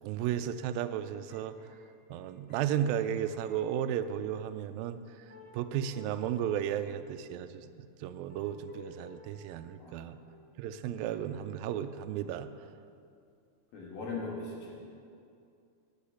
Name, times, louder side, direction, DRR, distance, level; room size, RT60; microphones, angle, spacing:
voice 1, 0.0-1.6 2.1-5.0 5.5-10.2 10.6-12.5, right 10 dB, 85° right, 10 dB, 2.3 m, -34 dB
sound 1, 1.3-4.2 4.8-4.9 5.3-7.2 8.1-9.8 10.2-12.6 13.0-13.4 14.0-14.1, left 3 dB, 45° left, 1.7 m, -57 dB
voice 2, 13.7-14.7, left 3 dB, 75° left, -3 dB, 3.8 m, -39 dB
10.0 x 8.7 x 8.3 m, 2.4 s
omnidirectional pair, 4.2 m